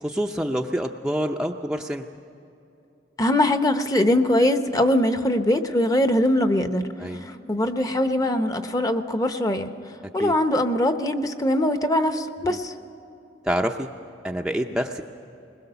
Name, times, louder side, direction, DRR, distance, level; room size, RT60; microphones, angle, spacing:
voice 1, 0.0-2.1 7.0-7.2 10.2-10.3 12.5-12.6 13.4-13.9 14.2-15.0, equal, 5° right, 2 dB, 0.5 m, -27 dB
voice 2, 3.2-6.9 7.2-9.7 10.1-12.7, left 1 dB, 20° left, 8 dB, 0.8 m, -22 dB
21.5 x 20.5 x 6.8 m, 2.8 s
head